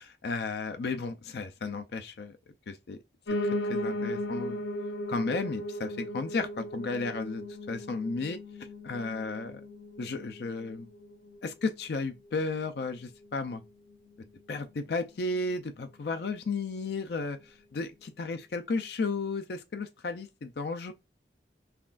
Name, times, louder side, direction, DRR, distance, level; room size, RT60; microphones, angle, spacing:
voice 1, 0.0-2.3 2.7-3.0 3.4-4.6 5.1-8.4 8.8-9.6 10.0-10.9 11.4-13.6 14.5-20.9, left 3 dB, 60° left, 0.4 m, -34 dB
Piano, 3.3-12.4 12.8-13.9 14.2-14.3 14.5-14.6 14.9-15.0 15.5-15.6, left 1 dB, 85° left, 0.8 m, -37 dB
5.7 x 2.4 x 2.4 m
head